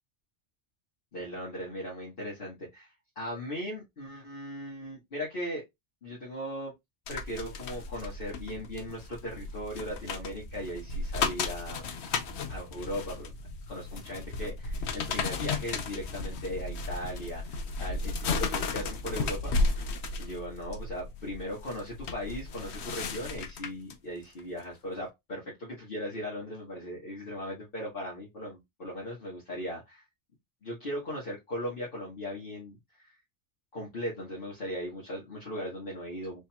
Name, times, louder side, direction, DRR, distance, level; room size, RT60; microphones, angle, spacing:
voice 1, 1.1-5.6 6.0-6.7 7.1-11.9 12.5-13.3 13.7-19.8 20.2-30.0 30.6-33.1 33.7-36.5, equal, 50° left, 1.6 m, -38 dB
sound 1, 7.1-23.9 24.4-24.6, left 3 dB, 70° left, 1.0 m, -34 dB
5.0 x 3.0 x 2.2 m
omnidirectional pair, 1.2 m